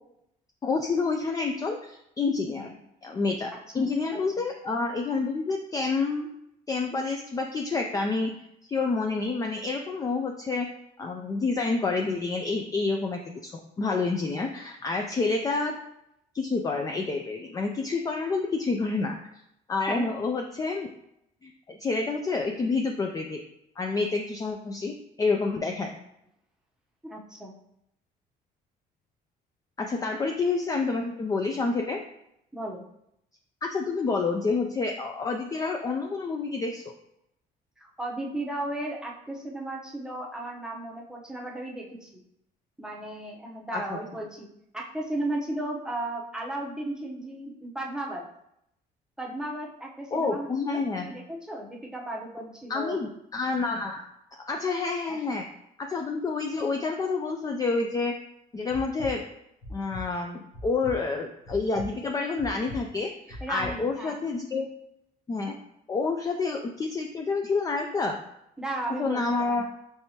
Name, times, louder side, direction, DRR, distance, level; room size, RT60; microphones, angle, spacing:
voice 1, 0.6-2.7 3.0-6.3 6.7-8.3 8.7-10.7 11.0-13.5 13.8-15.7 16.3-19.1 19.7-20.9 21.4-23.4 23.8-25.9 29.8-32.0 33.6-36.9 43.7-44.0 50.1-51.1 52.7-54.0 54.5-55.4 55.8-58.1 58.5-59.2 59.7-64.7 65.3-65.5 65.9-68.2 69.0-69.6, left 4 dB, 20° left, 2 dB, 0.3 m, -28 dB
voice 2, 27.0-27.6 32.5-32.8 37.8-42.2 42.8-44.5 44.7-48.2 49.2-53.0 55.1-55.2 63.4-64.2 68.6-69.6, right 1 dB, 5° right, -2 dB, 0.8 m, -35 dB
sound 1, 58.7-59.1 59.6-60.0 60.5-60.9 61.4-61.9 62.4-62.8 63.3-63.7, left 1 dB, 85° left, 1.0 m, -39 dB
4.5 x 3.3 x 2.8 m, 0.79 s
cardioid pair, 110°, 17 cm